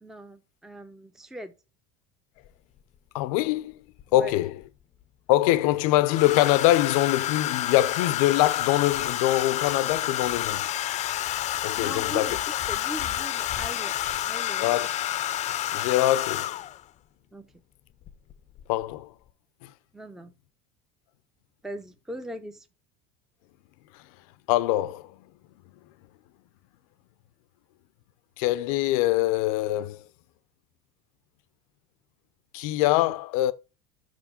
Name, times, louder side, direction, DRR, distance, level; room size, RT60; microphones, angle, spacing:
voice 1, 0.0-1.5 4.1-4.3 11.8-12.4 12.7-14.0 14.3-14.7 17.3-17.5 19.9-20.3 21.6-22.7, right 1 dB, ahead, 0.6 m, -40 dB
Domestic sounds home sounds, 2.5-2.6 4.0-4.6 6.1-16.8 18.1-18.3 18.6-18.9, left 12 dB, 40° left, 0.6 m, -29 dB
voice 2, 3.1-3.8 4.1-4.6 5.3-10.7 11.6-12.4 14.6-14.9 15.7-16.6 18.7-19.1 19.6-19.7 23.9-24.0 24.5-25.1 28.4-30.0 32.5-33.5, left 15 dB, 80° left, 0.6 m, -24 dB
6.0 x 5.0 x 5.1 m
supercardioid pair, 120°, 18 cm